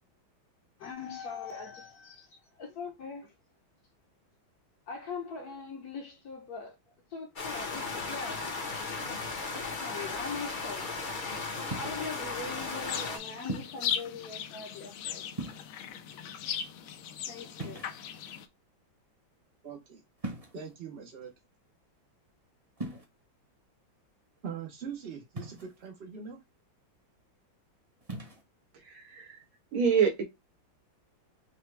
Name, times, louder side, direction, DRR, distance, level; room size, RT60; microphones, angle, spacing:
voice 1, 0.8-3.3 4.9-6.8 7.1-8.6 9.5-11.0 11.8-15.2 17.2-17.9, left 4 dB, 60° left, 1.1 m, -41 dB
sound 1, 7.4-13.2, left 4 dB, 45° left, 0.6 m, -36 dB
sound 2, 11.7-12.1 13.5-13.9 15.3-16.0 17.6-18.3 20.2-20.7 22.8-23.0 25.4-25.9 28.0-28.4, right 2 dB, 25° right, 0.8 m, -39 dB
sound 3, 12.9-18.5, left 9 dB, 80° left, 1.4 m, -38 dB
voice 2, 19.6-20.0 20.5-21.3 24.4-26.4, right 7 dB, 60° right, 0.6 m, -42 dB
voice 3, 28.8-29.4 29.7-30.2, right 6 dB, 85° right, 2.0 m, -26 dB
5.8 x 2.2 x 3.2 m
omnidirectional pair, 2.2 m